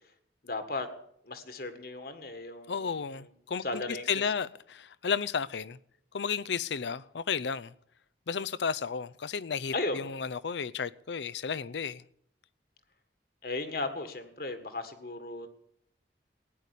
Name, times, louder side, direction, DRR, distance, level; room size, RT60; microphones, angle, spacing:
voice 1, 0.4-0.9 1.2-3.3 3.6-4.2 9.7-10.1 13.4-15.5, left 2 dB, 55° left, 1.7 m, -36 dB
voice 2, 2.7-5.8 6.1-7.7 8.3-12.0, left 6 dB, 80° left, 0.5 m, -33 dB
16.0 x 9.9 x 8.4 m
head